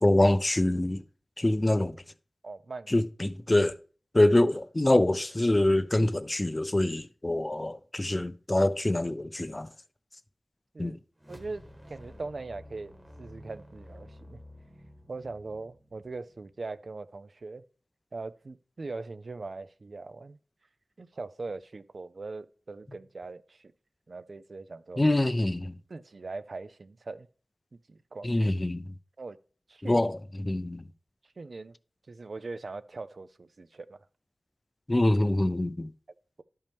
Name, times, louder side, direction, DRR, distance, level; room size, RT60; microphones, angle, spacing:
voice 1, 0.0-1.0 1.4-2.0 2.9-3.8 4.1-9.7 10.8-11.0 25.0-25.8 28.2-28.9 29.8-30.8 34.9-35.9, left 1 dB, 25° left, 0.5 m, -25 dB
voice 2, 2.4-2.9 10.7-11.0 11.3-14.4 15.1-17.6 18.1-20.4 21.0-23.7 24.1-25.0 25.9-27.3 27.7-28.3 29.2-29.4 29.7-30.0 31.4-31.7 32.1-34.0, right 3 dB, 60° right, 0.5 m, -41 dB
sound 1, 11.2-16.6, left 1 dB, 15° right, 1.3 m, -51 dB
11.5 x 5.4 x 3.5 m
wide cardioid pair, 70°, 0 cm